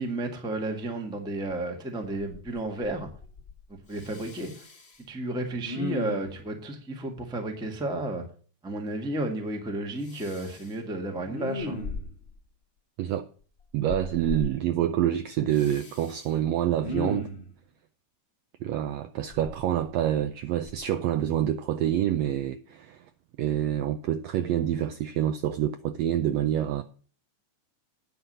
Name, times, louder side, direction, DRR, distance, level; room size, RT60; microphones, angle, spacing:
voice 1, 0.0-3.1 3.9-4.5 5.1-8.2 8.6-11.8, right 1 dB, 5° right, 0.5 m, -32 dB
Respiratory sounds, 1.5-1.6 2.0-2.6 2.8-3.6 3.9-5.0 5.6-6.4 10.0-10.7 11.2-12.3 13.9-14.5 15.5-16.2 16.7-17.5 19.3-20.2 20.7-20.8, left 2 dB, 40° left, 0.9 m, -36 dB
voice 2, 13.7-17.3 18.6-23.0 23.4-26.8, right 11 dB, 80° right, 1.5 m, -27 dB
9.5 x 5.9 x 7.8 m
omnidirectional pair, 3.6 m